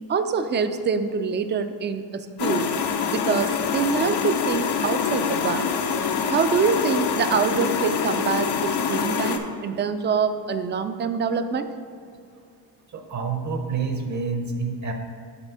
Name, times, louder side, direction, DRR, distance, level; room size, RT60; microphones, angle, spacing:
voice 1, 0.1-2.7 3.1-5.7 6.3-11.7, right 6 dB, 30° right, 10 dB, 0.4 m, -25 dB
sound 1, 2.4-9.4, left 6 dB, 70° left, 0.7 m, -25 dB
voice 2, 12.9-14.9, right 4 dB, 45° right, 5 dB, 0.8 m, -28 dB
8.0 x 4.1 x 5.5 m, 2.4 s
cardioid pair, 125°, 41 cm